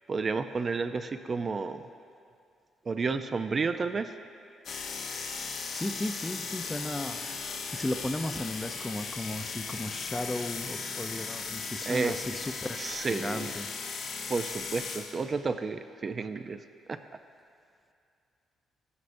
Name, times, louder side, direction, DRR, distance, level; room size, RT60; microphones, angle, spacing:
voice 1, 0.1-1.8 2.9-4.1 11.9-12.2 12.8-13.5 14.3-16.6 16.9-17.0, right 4 dB, 40° right, 9 dB, 0.4 m, -31 dB
sound 1, 4.6-15.2, left 5 dB, 65° left, 0.8 m, -37 dB
voice 2, 5.7-7.2 7.7-12.8 13.1-13.7, left 1 dB, 15° left, 8 dB, 0.5 m, -35 dB
14.0 x 9.6 x 2.6 m, 2.4 s
cardioid pair, 90°, 0 cm